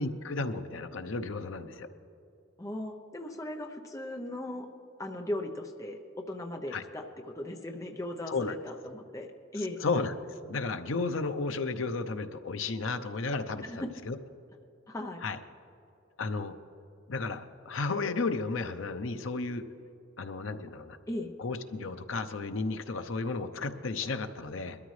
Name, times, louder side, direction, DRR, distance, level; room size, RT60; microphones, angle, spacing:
voice 1, 0.0-1.9 6.7-6.8 8.3-8.6 9.8-10.1 10.5-14.2 15.2-15.4 16.2-16.5 17.1-19.6 20.2-21.0 21.4-24.8, left 3 dB, 85° left, 9 dB, 0.7 m, -33 dB
voice 2, 2.6-4.7 5.0-9.8 13.6-13.9 14.9-15.2 21.1-21.3, left 1 dB, 15° left, 3 dB, 0.7 m, -38 dB
21.5 x 13.5 x 3.2 m, 2.7 s
head